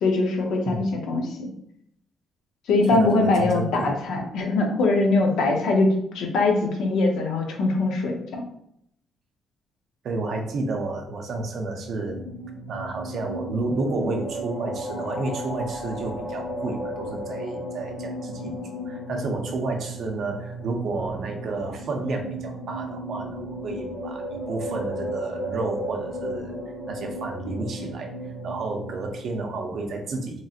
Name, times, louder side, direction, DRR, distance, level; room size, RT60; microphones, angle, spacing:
voice 1, 0.0-1.5 2.7-8.4, left 2 dB, 80° left, 1 dB, 0.6 m, -22 dB
voice 2, 2.9-4.2 10.0-12.2 12.7-18.5 18.9-26.6 26.9-30.4, right 3 dB, 50° right, 3 dB, 0.5 m, -31 dB
sound 1, 11.8-29.1, right 1 dB, 45° left, 1.0 m, -34 dB
2.9 x 2.7 x 2.4 m, 0.74 s
cardioid pair, 165°, 0 cm